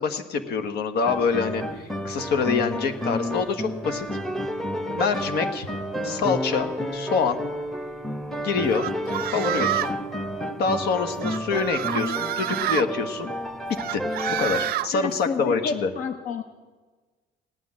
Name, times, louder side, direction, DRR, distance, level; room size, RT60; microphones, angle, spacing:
voice 1, 0.0-4.1 4.9-5.7 6.0-7.4 8.4-8.9 9.3-10.0 10.6-13.3 13.9-14.0 14.4-15.9, left 5 dB, 70° left, 7 dB, 1.5 m, -26 dB
sound 1, 1.1-14.7, equal, ahead, 1.2 m, -30 dB
sound 2, 8.7-10.0 11.2-12.9 13.8-14.9, right 14 dB, 65° right, 0.5 m, -28 dB
voice 2, 14.9-16.4, left 5 dB, 50° left, 8 dB, 0.8 m, -30 dB
17.0 x 9.6 x 7.5 m, 1.3 s
cardioid pair, 110°, 17 cm